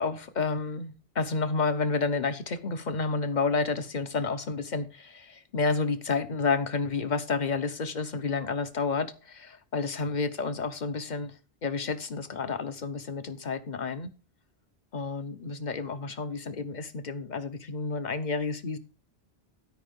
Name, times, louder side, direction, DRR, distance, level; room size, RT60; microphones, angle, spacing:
voice 1, 0.0-11.3 11.6-14.1 14.9-18.8, left 4 dB, 50° left, 1.0 m, -30 dB
13.0 x 5.4 x 5.3 m
omnidirectional pair, 1.0 m